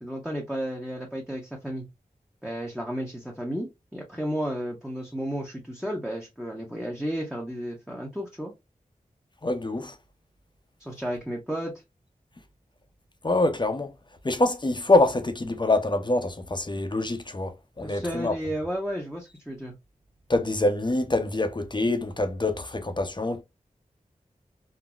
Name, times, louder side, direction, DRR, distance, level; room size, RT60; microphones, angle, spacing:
voice 1, 0.0-1.9 2.4-8.5 10.8-11.7 17.8-19.7, equal, 5° right, 0.8 m, -33 dB
voice 2, 9.4-9.9 13.2-13.9 14.2-17.5 17.8-18.3 20.3-23.4, left 2 dB, 30° left, 0.6 m, -25 dB
3.8 x 2.0 x 2.3 m
cardioid pair, 40°, 15 cm